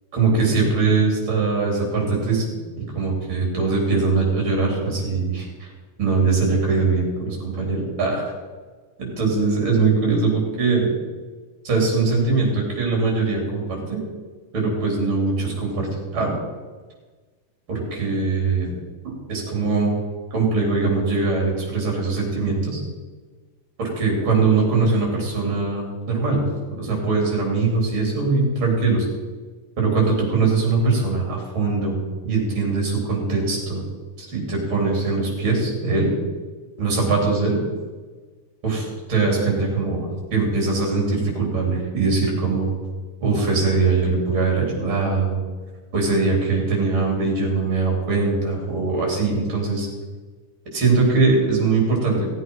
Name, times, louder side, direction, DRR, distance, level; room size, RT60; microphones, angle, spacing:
voice 1, 0.1-2.4 2.9-5.7 6.0-8.3 9.0-10.9 11.6-14.0 14.5-16.4 17.7-18.7 19.0-19.9 20.3-22.8 23.8-26.4 26.7-29.1 29.8-32.0 32.2-33.8 34.2-36.1 36.8-37.6 38.6-42.7 43.2-45.3 45.9-49.9 50.7-52.3, right 4 dB, 35° right, -1 dB, 4.4 m, -21 dB
16.0 x 8.3 x 5.7 m, 1.4 s
omnidirectional pair, 4.0 m